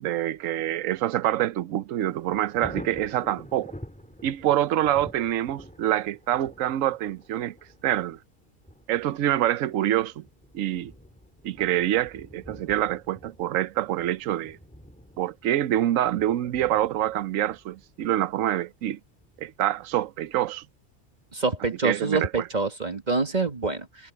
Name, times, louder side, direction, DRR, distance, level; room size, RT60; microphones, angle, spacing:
voice 1, 0.0-3.7 4.2-7.5 7.8-8.2 8.9-10.2 10.5-10.9 11.4-14.6 15.2-19.0 19.4-20.6 21.8-22.5, right 12 dB, 65° right, 1.0 m, -26 dB
Thunder, 2.0-20.7 21.2-21.3, equal, 5° left, 2.4 m, -48 dB
voice 2, 21.3-24.1, right 3 dB, 30° right, 1.8 m, -26 dB
omnidirectional pair, 1.6 m